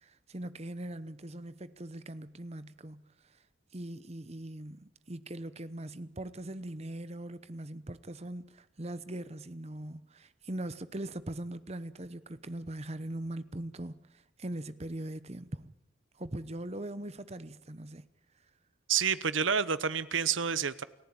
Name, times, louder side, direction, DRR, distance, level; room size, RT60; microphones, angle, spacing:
voice 1, 0.0-3.0 3.7-14.0 14.4-15.7 16.2-18.0, right 1 dB, 35° right, 0.9 m, -41 dB
voice 2, 18.9-20.8, right 7 dB, 80° right, 1.0 m, -29 dB
29.0 x 15.0 x 8.8 m
head